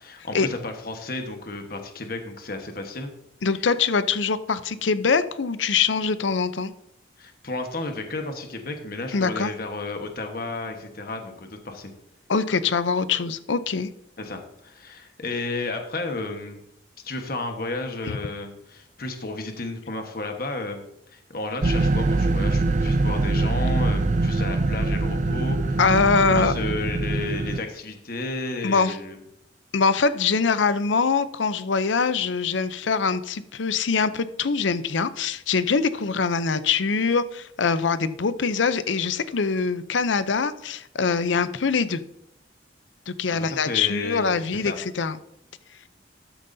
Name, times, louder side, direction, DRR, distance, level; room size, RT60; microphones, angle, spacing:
voice 1, 0.0-3.1 7.2-11.9 14.2-16.6 17.0-20.8 21.1-25.8 26.3-29.2 43.3-44.4 44.6-44.8, left 2 dB, 50° left, 5 dB, 1.3 m, -32 dB
voice 2, 3.4-6.7 9.1-9.5 12.3-13.9 18.1-18.2 25.8-26.5 28.6-29.0 29.7-42.0 43.1-45.2, left 5 dB, 80° left, 13 dB, 0.6 m, -23 dB
sound 1, 21.6-27.6, right 2 dB, 40° right, 0.4 m, -23 dB
13.0 x 9.2 x 2.7 m, 0.79 s
head